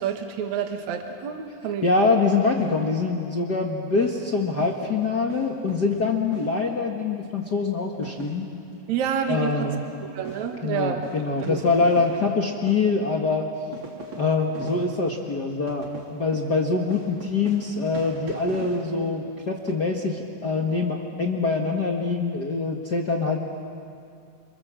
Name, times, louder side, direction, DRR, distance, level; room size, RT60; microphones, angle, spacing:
voice 1, 0.0-1.9 8.9-9.7 10.0-11.0 11.4-11.6, right 8 dB, 60° right, 4 dB, 2.8 m, -28 dB
voice 2, 1.8-8.5 9.3-9.8 10.6-13.5 14.2-23.4, left 4 dB, 45° left, 0 dB, 1.4 m, -24 dB
sound 1, 2.6-3.6 4.0-7.1 7.4-7.6 7.9-19.7, right 4 dB, 40° right, 3.0 m, -43 dB
27.5 x 27.5 x 7.5 m, 2.4 s
omnidirectional pair, 4.0 m